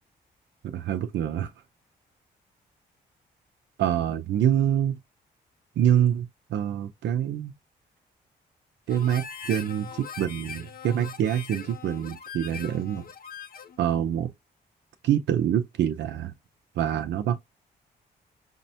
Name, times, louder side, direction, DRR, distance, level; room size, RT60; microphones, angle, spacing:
voice 1, 0.6-1.5 3.8-5.0 5.8-7.5 8.9-13.0 13.8-14.3 15.0-16.3 16.8-17.4, right 10 dB, 75° right, 0.4 m, -26 dB
Harmonica, 8.9-13.8, left 7 dB, 50° left, 0.5 m, -41 dB
5.2 x 2.1 x 2.7 m
supercardioid pair, 55°, 19 cm